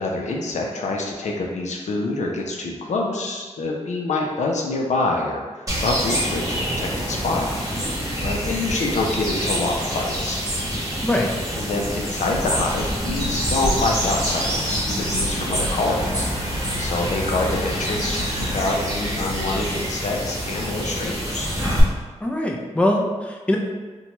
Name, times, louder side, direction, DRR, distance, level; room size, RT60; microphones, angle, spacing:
voice 1, 0.0-7.5 8.2-10.4 11.5-21.5, left 2 dB, 70° left, 0 dB, 0.5 m, -26 dB
sound 1, 5.7-21.8, equal, 30° right, 1.0 m, -27 dB
voice 2, 10.9-11.3 22.2-23.6, left 1 dB, 10° left, -1 dB, 0.4 m, -22 dB
sound 2, 12.2-19.7, equal, 55° right, 0.4 m, -36 dB
sound 3, 12.3-18.7, left 1 dB, 50° left, 1.1 m, -31 dB
2.8 x 2.2 x 2.9 m, 1.3 s
cardioid pair, 55°, 12 cm